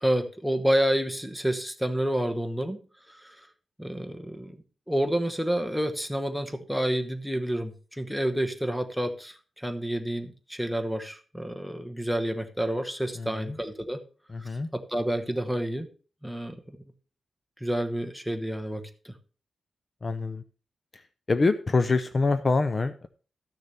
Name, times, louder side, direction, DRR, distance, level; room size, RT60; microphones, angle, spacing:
voice 1, 0.0-2.8 3.1-3.4 3.8-4.5 4.9-14.0 14.7-15.9 16.2-16.6 17.6-19.1, right 1 dB, ahead, 8 dB, 1.0 m, -29 dB
voice 2, 13.2-13.6 14.3-14.7 20.0-20.4 21.3-23.1, left 3 dB, 30° left, 11 dB, 0.5 m, -25 dB
13.5 x 6.6 x 4.2 m, 0.37 s
wide cardioid pair, 145°, 0 cm